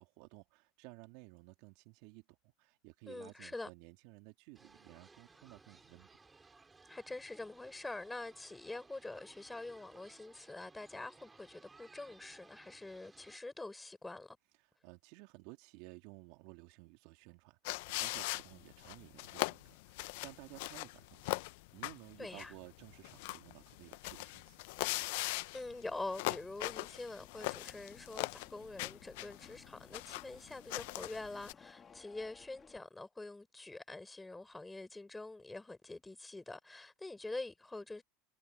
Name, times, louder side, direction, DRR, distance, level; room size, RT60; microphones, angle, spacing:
voice 1, 0.0-6.1 14.6-21.4 21.7-24.6, right 23 dB, 65° right, 2.7 m, -55 dB
voice 2, 3.1-3.7 6.9-14.4 22.2-22.5 25.5-38.0, left 2 dB, 10° left, 4.1 m, -45 dB
sound 1, 4.5-13.4, right 3 dB, 15° right, 6.2 m, -61 dB
sound 2, 17.6-31.5, left 22 dB, 70° left, 0.7 m, -41 dB
sound 3, 27.2-32.8, left 7 dB, 30° left, 2.6 m, -61 dB
supercardioid pair, 105°, 0 cm